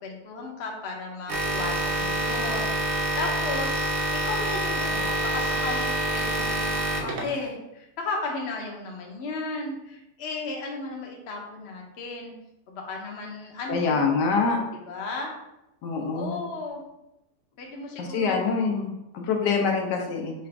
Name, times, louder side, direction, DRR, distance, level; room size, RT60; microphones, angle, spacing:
voice 1, 0.0-3.8 4.1-12.3 12.7-14.1 14.9-15.3 16.0-16.8 17.6-18.4, left 3 dB, 50° left, 0 dB, 0.8 m, -35 dB
sound 1, 1.3-7.5, right 1 dB, 80° right, 0.5 m, -27 dB
voice 2, 13.7-14.6 15.8-16.4 18.0-20.3, left 5 dB, 85° left, 2 dB, 1.3 m, -25 dB
4.9 x 2.5 x 3.3 m, 0.89 s
omnidirectional pair, 1.8 m